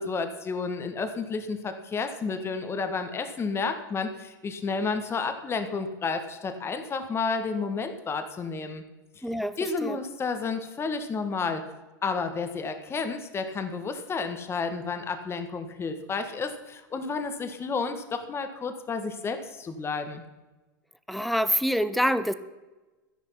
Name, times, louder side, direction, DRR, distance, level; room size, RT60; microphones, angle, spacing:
voice 1, 0.0-8.8 9.2-9.3 9.6-11.6 12.0-20.2, left 4 dB, 20° left, 8 dB, 1.5 m, -31 dB
voice 2, 9.2-10.0 21.1-22.3, equal, ahead, 13 dB, 0.8 m, -26 dB
12.5 x 10.5 x 5.8 m, 1.2 s
hypercardioid pair, 105°, 11 cm